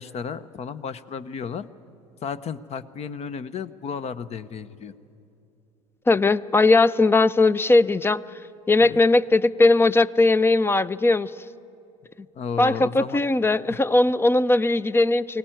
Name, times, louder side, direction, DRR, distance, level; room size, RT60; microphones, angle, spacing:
voice 1, 0.0-1.7 2.2-4.9 8.8-9.0 12.3-13.2, left 6 dB, 40° left, 16 dB, 0.9 m, -33 dB
voice 2, 6.1-8.2 8.7-11.3 12.6-15.4, left 2 dB, 15° left, 19 dB, 0.6 m, -19 dB
23.0 x 18.0 x 9.1 m, 2.7 s
hypercardioid pair, 70°, 17 cm